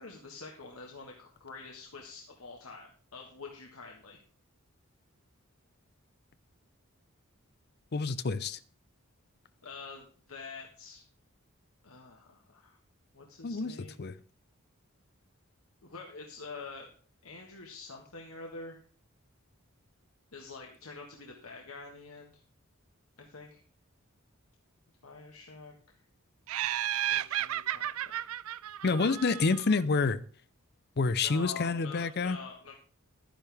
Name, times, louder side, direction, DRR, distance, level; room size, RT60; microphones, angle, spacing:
voice 1, 0.0-4.2 9.6-11.0 11.8-12.8 13.1-14.0 15.8-16.9 17.2-18.8 20.3-22.4 23.2-23.6 25.0-25.7 27.1-28.2 31.2-32.7, left 4 dB, 75° left, 1 dB, 1.6 m, -46 dB
voice 2, 7.9-8.6 13.4-14.2 28.8-30.2 31.0-32.4, left 4 dB, 50° left, 15 dB, 0.6 m, -28 dB
Laughter, 26.5-29.8, right 12 dB, 75° right, 0.4 m, -33 dB
12.5 x 10.0 x 3.5 m, 0.43 s
head